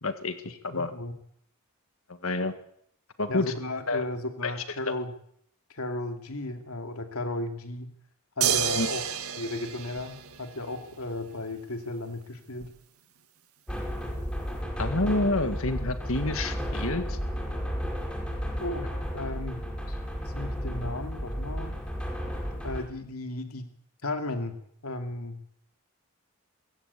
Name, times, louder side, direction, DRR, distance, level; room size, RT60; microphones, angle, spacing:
voice 1, 0.0-0.4 0.6-0.9 2.1-2.5 3.2-3.5 3.9-4.1 4.4-4.5 8.8-8.9 14.8-17.2, left 2 dB, 70° left, 9 dB, 1.8 m, -28 dB
voice 2, 0.7-1.1 3.3-5.1 5.7-7.9 8.4-9.0 9.4-12.7 18.6-19.6 19.9-20.0 20.3-21.8 22.6-23.7 24.0-24.5 24.8-25.4, left 2 dB, 90° left, 6 dB, 2.5 m, -35 dB
sound 1, 8.4-10.9 12.6-12.7, right 8 dB, 85° right, 2.0 m, -30 dB
sound 2, 13.7-22.8, equal, 5° left, 4.9 m, -33 dB
22.0 x 17.0 x 8.5 m, 0.69 s
head